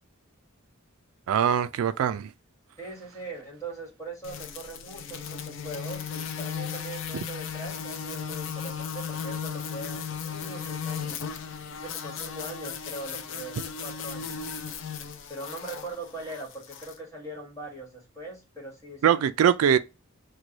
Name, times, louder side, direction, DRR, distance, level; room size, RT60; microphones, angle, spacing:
voice 1, 1.3-2.3 19.0-19.8, right 8 dB, 85° right, 0.3 m, -22 dB
voice 2, 2.8-11.2 11.8-14.4 15.3-19.2, right 2 dB, 15° left, 1.3 m, -41 dB
sound 1, 4.2-17.0, left 7 dB, 65° left, 0.5 m, -36 dB
3.1 x 2.2 x 3.8 m
head